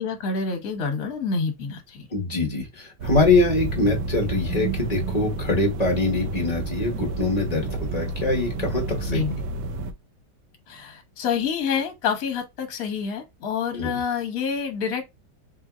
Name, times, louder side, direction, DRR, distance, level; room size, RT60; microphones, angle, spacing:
voice 1, 0.0-2.1 9.1-9.4 10.7-15.1, left 6 dB, 55° left, 1.4 m, -27 dB
voice 2, 2.1-9.2 13.7-14.0, left 2 dB, 25° left, 1.0 m, -23 dB
sound 1, 3.0-9.9, right 3 dB, 85° right, 1.3 m, -30 dB
3.8 x 2.7 x 3.5 m
omnidirectional pair, 2.1 m